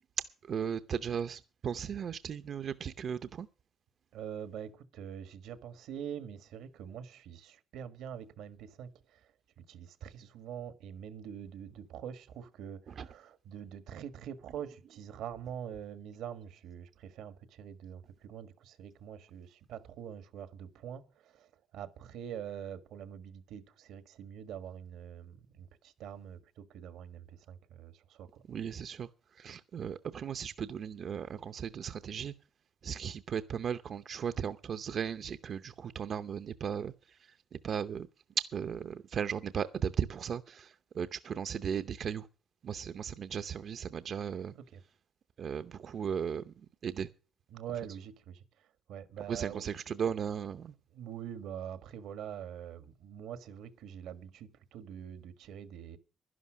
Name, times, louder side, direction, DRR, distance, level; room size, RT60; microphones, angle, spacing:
voice 1, 0.2-3.5 12.9-13.1 28.5-32.3 32.8-38.1 38.4-42.3 42.6-44.5 45.4-47.1 49.3-50.7, right 7 dB, 55° right, 0.7 m, -36 dB
voice 2, 4.1-28.4 44.7-44.8 47.5-49.6 50.9-56.0, right 9 dB, 85° right, 1.5 m, -45 dB
11.5 x 11.0 x 6.2 m
cardioid pair, 90°, 0 cm